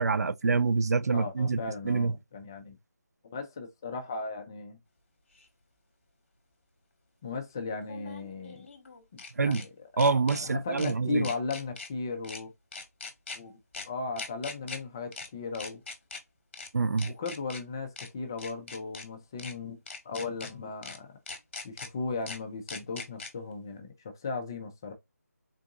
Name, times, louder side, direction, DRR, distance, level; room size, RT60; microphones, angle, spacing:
voice 1, 0.0-1.6 1.8-2.1 9.4-9.6 10.0-11.3 16.7-17.1, right 4 dB, 70° right, 0.4 m, -26 dB
voice 2, 1.1-2.8 3.2-4.8 7.2-8.7 9.1-10.1 10.4-12.5 13.3-13.6 13.9-15.8 17.0-19.8 20.0-21.2 21.6-24.9, left 4 dB, 15° left, 0.3 m, -36 dB
sound 1, 5.4-5.5 7.8-9.7 10.0-10.4 10.8-10.9 11.2-11.9 12.2-12.4 12.7-13.4 13.7-13.9 14.2-14.8 15.1-15.3 15.5-16.2 16.5-16.7 17.0-17.6 18.0-18.1 18.4-19.0 19.4-19.5 19.9-20.5 20.8-21.0 21.3-21.9 22.3-22.4 22.7-23.3, left 4 dB, 40° left, 1.0 m, -41 dB
3.8 x 2.5 x 2.3 m
figure-of-eight pair, 160°, 9 cm